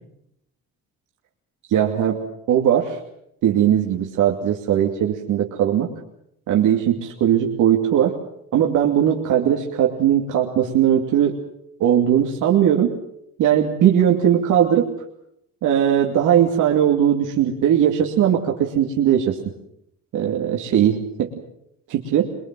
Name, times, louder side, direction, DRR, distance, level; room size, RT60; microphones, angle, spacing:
voice 1, 1.7-2.2 2.5-3.0 3.4-5.9 6.5-8.1 8.5-11.3 11.8-12.9 13.4-14.9 15.6-19.4 20.1-21.3 21.9-22.3, right 10 dB, 85° right, 0 dB, 2.6 m, -19 dB
24.0 x 21.5 x 7.6 m, 0.76 s
cardioid pair, 90°, 30 cm